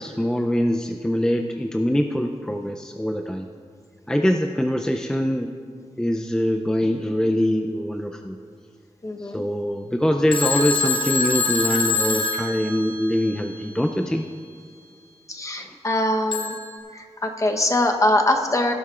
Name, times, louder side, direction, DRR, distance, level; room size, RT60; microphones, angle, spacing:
voice 1, 0.0-3.5 4.1-5.5 5.9-8.4 9.2-14.3 15.6-15.8, equal, 5° left, 4 dB, 0.4 m, -23 dB
voice 2, 9.0-9.4 15.3-16.6 16.9-18.7, left 1 dB, 30° left, 3 dB, 0.9 m, -22 dB
Telephone, 10.3-13.3 16.3-16.8, left 3 dB, 50° left, 1.4 m, -25 dB
17.5 x 11.0 x 2.4 m, 2.1 s
wide cardioid pair, 90°, 11 cm